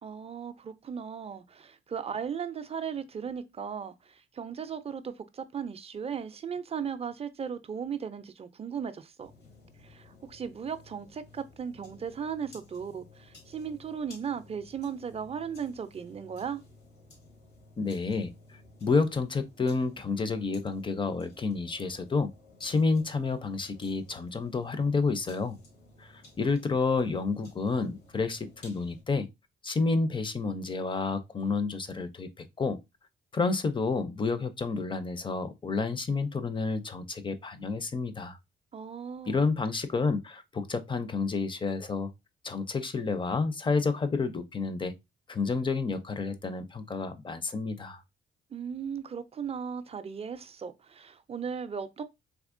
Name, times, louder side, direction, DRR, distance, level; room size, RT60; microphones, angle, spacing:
voice 1, 0.0-9.3 9.8-16.6 38.7-39.5 48.5-52.0, right 7 dB, 30° right, 0.4 m, -37 dB
sound 1, 9.2-29.0, left 2 dB, 90° left, 1.8 m, -55 dB
voice 2, 17.8-18.3 18.8-22.3 22.6-25.6 26.0-29.3 29.6-32.8 33.3-38.4 39.3-42.1 42.4-44.9 45.3-48.0, left 4 dB, 25° left, 0.5 m, -30 dB
3.6 x 2.9 x 2.5 m
cardioid pair, 90°, 20 cm